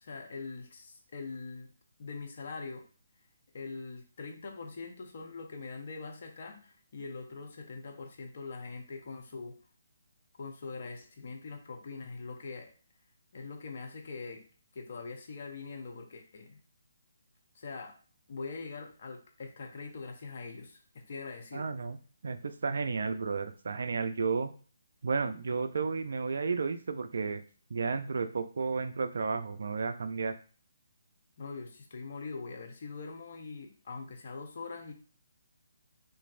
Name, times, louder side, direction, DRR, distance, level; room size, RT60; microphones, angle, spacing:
voice 1, 0.0-1.7 2.0-2.8 3.5-9.6 10.4-12.7 13.3-14.4 14.7-16.6 17.5-18.0 18.3-21.7 31.4-34.9, left 4 dB, 50° left, 3 dB, 0.7 m, -43 dB
voice 2, 21.5-22.0 22.2-24.5 25.0-27.4 27.7-30.3, right 4 dB, 65° right, 9 dB, 0.3 m, -32 dB
3.0 x 2.5 x 2.5 m, 0.40 s
figure-of-eight pair, 150°, 0 cm